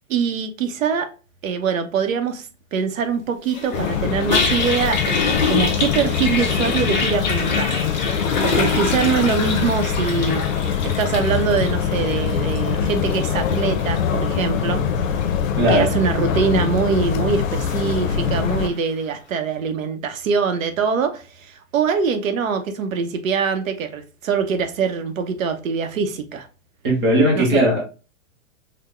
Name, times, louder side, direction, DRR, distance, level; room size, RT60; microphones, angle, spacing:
voice 1, 0.1-1.1 1.4-7.9 8.4-14.8 15.7-26.5 27.3-27.6, right 6 dB, 85° right, 0.8 m, -23 dB
Toilet flush, 3.5-18.7, left 4 dB, 35° left, 0.6 m, -27 dB
sound 1, 3.7-18.7, left 7 dB, 80° left, 0.7 m, -23 dB
voice 2, 15.6-15.9 26.8-27.8, right 1 dB, 20° right, 0.6 m, -17 dB
3.9 x 2.1 x 3.1 m
supercardioid pair, 180°, 39 cm